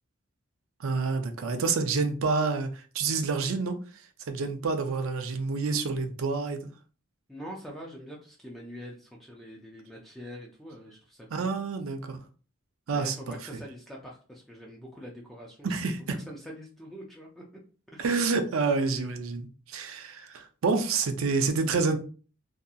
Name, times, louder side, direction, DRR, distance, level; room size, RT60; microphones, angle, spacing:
voice 1, 0.8-3.8 4.3-6.7 11.3-12.2 12.9-13.2 15.6-16.0 18.0-22.0, right 4 dB, 75° right, 0.5 m, -28 dB
voice 2, 7.3-11.5 12.9-15.7 16.3-17.4 17.9-18.1, equal, ahead, 0.4 m, -44 dB
2.7 x 2.5 x 2.3 m
head